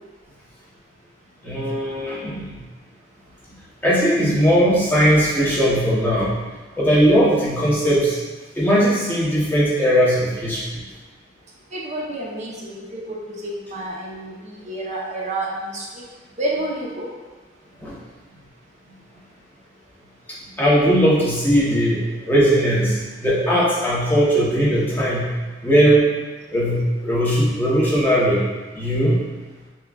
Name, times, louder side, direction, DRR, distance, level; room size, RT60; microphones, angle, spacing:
voice 1, 1.4-2.6 3.8-6.3 6.8-8.2 8.6-10.6 17.8-17.9 20.6-25.3 25.6-26.0 26.5-28.4 28.7-29.2, equal, 10° left, -7 dB, 0.9 m, -18 dB
voice 2, 11.7-16.0 16.4-17.1, right 1 dB, 40° right, -3 dB, 0.7 m, -29 dB
5.6 x 2.3 x 2.3 m, 1.2 s
head